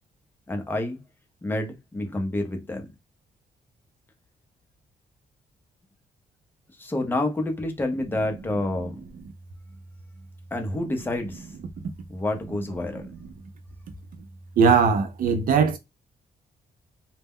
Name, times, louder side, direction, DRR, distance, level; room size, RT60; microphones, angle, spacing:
voice 1, 0.5-1.0 1.4-2.8 6.8-9.0 10.5-11.5 12.1-13.0, left 1 dB, 15° left, 0.6 m, -28 dB
voice 2, 14.6-15.8, right 6 dB, 60° right, 0.5 m, -19 dB
2.1 x 2.1 x 3.5 m
cardioid pair, 160°, 16 cm